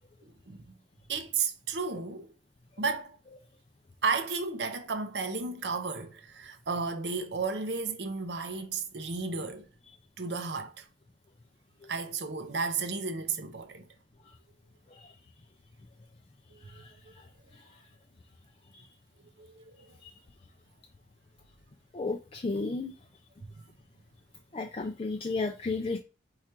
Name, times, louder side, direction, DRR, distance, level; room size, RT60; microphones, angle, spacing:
voice 1, 0.2-0.6 1.1-2.3 2.8-3.2 4.0-9.7 10.2-10.9 11.9-13.9 16.5-17.1 19.4-20.0 23.5-23.6, right 4 dB, 70° right, 0.7 m, -33 dB
voice 2, 21.9-22.9 24.5-26.0, left 3 dB, 30° left, 0.4 m, -33 dB
4.8 x 2.4 x 4.4 m
head